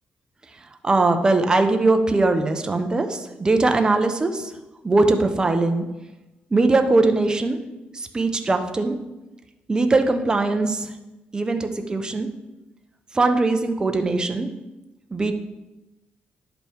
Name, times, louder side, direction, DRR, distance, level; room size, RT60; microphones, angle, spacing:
voice 1, 0.8-4.5 4.8-5.9 6.5-7.6 7.9-9.0 9.7-10.9 11.3-12.3 13.1-14.5 15.1-15.3, right 3 dB, 20° right, 6 dB, 0.8 m, -20 dB
10.5 x 5.3 x 4.6 m, 1.0 s
cardioid pair, 120°, 4 cm